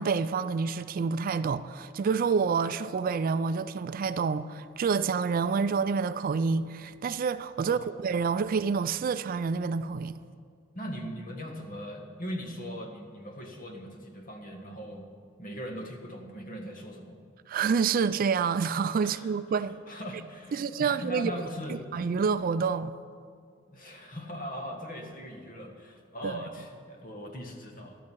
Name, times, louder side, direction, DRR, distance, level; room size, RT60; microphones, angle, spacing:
voice 1, 0.0-10.2 17.5-19.8 20.5-21.3 21.9-22.9 26.2-26.4, right 5 dB, 45° right, 0.3 m, -28 dB
voice 2, 7.6-7.9 10.7-15.1 15.4-17.2 19.0-21.9 23.7-28.0, equal, 45° left, 1.6 m, -40 dB
14.5 x 12.0 x 4.6 m
head